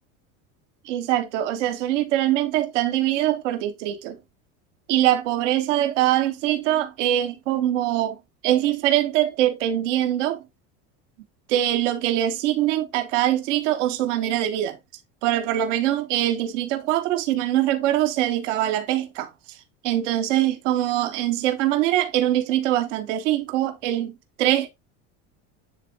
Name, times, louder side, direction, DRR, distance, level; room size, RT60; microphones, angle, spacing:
voice 1, 0.8-4.2 4.9-8.2 8.4-10.4 11.5-14.8 15.2-19.3 19.8-24.7, right 13 dB, 85° right, 1.3 m, -23 dB
10.0 x 3.5 x 2.9 m
supercardioid pair, 145°, 36 cm